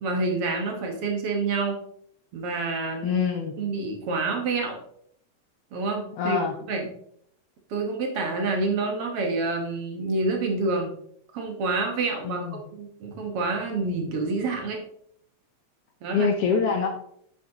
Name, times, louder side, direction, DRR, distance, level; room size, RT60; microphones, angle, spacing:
voice 1, 0.0-1.8 2.3-3.2 3.6-4.8 5.7-6.4 6.7-6.9 7.7-10.9 11.3-14.8 16.0-16.3, right 3 dB, 60° right, 3 dB, 1.9 m, -28 dB
voice 2, 3.0-3.5 6.2-6.5 12.2-12.6 16.1-16.9, left 5 dB, 70° left, 4 dB, 1.4 m, -25 dB
9.2 x 8.0 x 2.9 m, 0.68 s
omnidirectional pair, 3.4 m